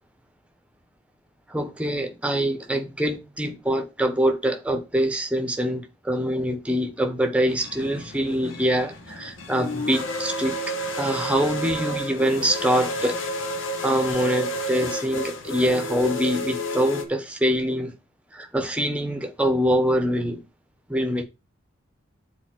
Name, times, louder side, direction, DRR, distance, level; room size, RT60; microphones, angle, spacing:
voice 1, 1.5-10.6 11.0-13.2 13.8-17.9 18.3-20.4 20.9-21.2, equal, 5° right, 0.9 m, -24 dB
sound 1, 7.5-17.0, equal, 80° left, 1.4 m, -31 dB
6.9 x 4.1 x 6.1 m
head